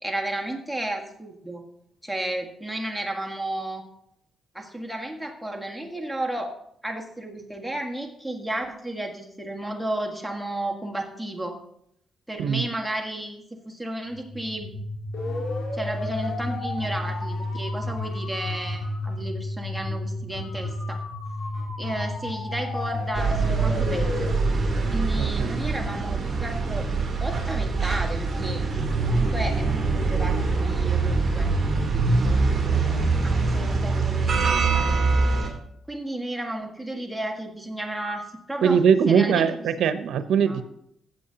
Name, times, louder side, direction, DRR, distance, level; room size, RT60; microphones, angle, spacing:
voice 1, 0.0-1.6 2.0-3.9 4.5-6.5 6.8-11.6 12.3-14.7 15.7-21.0 21.8-24.3 24.9-28.6 29.0-29.7 29.9-31.5 32.7-33.0 33.2-35.0 35.9-40.1 40.5-40.6, right 1 dB, ahead, 1 dB, 1.7 m, -33 dB
sound 1, 14.1-25.9, left 1 dB, 75° left, 2.9 m, -31 dB
sound 2, 23.2-35.5, right 4 dB, 35° right, 2.6 m, -24 dB
voice 2, 25.2-25.6 38.6-40.6, right 7 dB, 80° right, 12 dB, 0.7 m, -21 dB
15.5 x 7.6 x 2.9 m, 0.74 s
cardioid pair, 90°, 0 cm